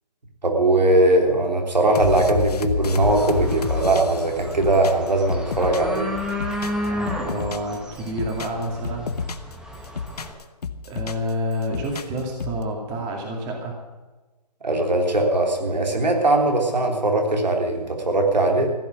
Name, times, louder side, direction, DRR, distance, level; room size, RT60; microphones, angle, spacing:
voice 1, 0.4-6.1 14.6-18.7, right 2 dB, 85° right, 2 dB, 3.2 m, -20 dB
sound 1, 1.9-6.0 6.3-7.8 8.1-9.5 9.8-11.3 11.6-12.6, left 6 dB, 70° left, 1.1 m, -30 dB
sound 2, 2.9-10.3, left 1 dB, 5° right, 1.1 m, -33 dB
voice 2, 6.8-9.2 10.8-13.8, equal, 20° right, 1 dB, 2.3 m, -29 dB
15.0 x 7.1 x 9.4 m, 1.2 s
hypercardioid pair, 150°, 21 cm